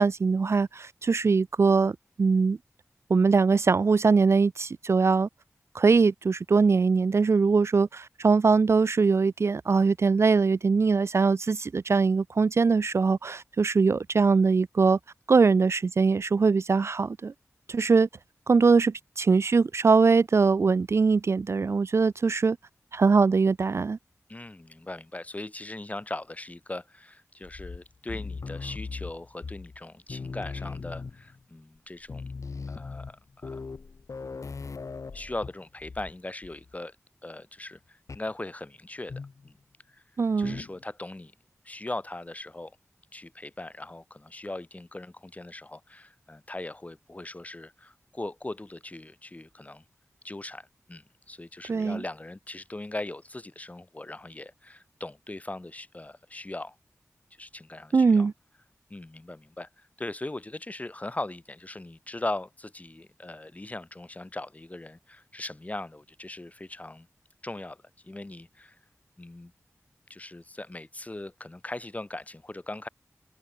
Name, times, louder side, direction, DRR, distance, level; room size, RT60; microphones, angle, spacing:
voice 1, 0.0-2.6 3.1-5.3 5.7-15.0 15.3-17.3 17.7-18.1 18.5-22.6 22.9-24.0 40.2-40.6 51.7-52.0 57.9-58.3, right 4 dB, 55° right, 0.4 m, -22 dB
voice 2, 24.3-32.2 32.7-33.6 35.1-37.0 37.2-39.6 39.9-40.0 40.4-41.3 41.6-42.7 43.1-49.8 50.2-56.7 57.4-58.3 58.9-67.1 67.4-67.8 68.0-68.8 69.2-69.5 70.1-72.9, left 2 dB, 25° left, 1.4 m, -39 dB
sound 1, 27.4-29.8 30.1-31.4 31.8-31.9 32.0-36.2 36.4-36.7 38.1-38.3 39.1-39.5 40.4-40.8, left 4 dB, 75° left, 2.0 m, -39 dB
wide cardioid pair, 75°, 5 cm